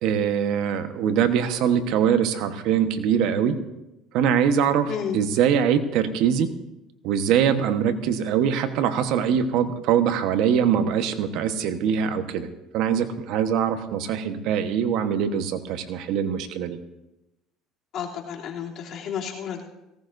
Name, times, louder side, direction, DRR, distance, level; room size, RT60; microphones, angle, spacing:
voice 1, 0.0-3.6 4.1-6.5 7.0-12.5 12.7-16.8, right 8 dB, 70° right, 9 dB, 1.2 m, -23 dB
voice 2, 17.9-19.6, left 8 dB, 55° left, -2 dB, 3.0 m, -31 dB
18.0 x 17.0 x 2.6 m, 0.95 s
supercardioid pair, 100°, 0 cm